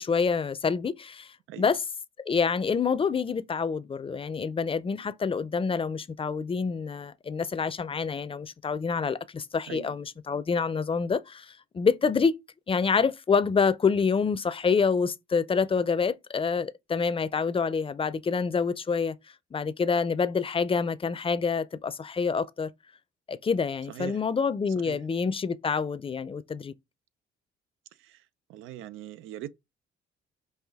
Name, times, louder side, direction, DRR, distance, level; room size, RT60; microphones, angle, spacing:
voice 1, 0.0-1.8 2.3-12.3 12.7-19.2 19.5-22.7 23.3-26.7, left 5 dB, 25° left, 0.6 m, -27 dB
voice 2, 23.9-24.2 24.8-25.0 28.0-28.2 28.5-29.5, right 13 dB, 90° right, 0.5 m, -41 dB
5.7 x 2.7 x 3.5 m
cardioid pair, 90°, 20 cm